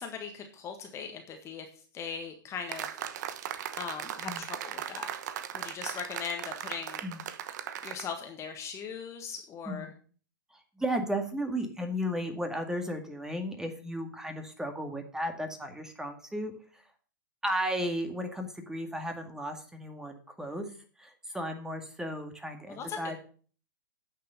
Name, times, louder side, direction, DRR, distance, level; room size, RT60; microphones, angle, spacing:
voice 1, 0.0-1.7 1.9-2.9 3.8-5.1 5.5-7.0 7.8-9.9 22.7-23.2, left 6 dB, 25° left, 5 dB, 1.6 m, -39 dB
sound 1, 2.7-8.1, right 10 dB, 55° right, 1.0 m, -38 dB
voice 2, 10.5-16.5 17.4-20.7 21.0-23.2, equal, 5° right, 5 dB, 2.0 m, -34 dB
9.8 x 6.7 x 6.7 m, 0.42 s
figure-of-eight pair, 110°, 11 cm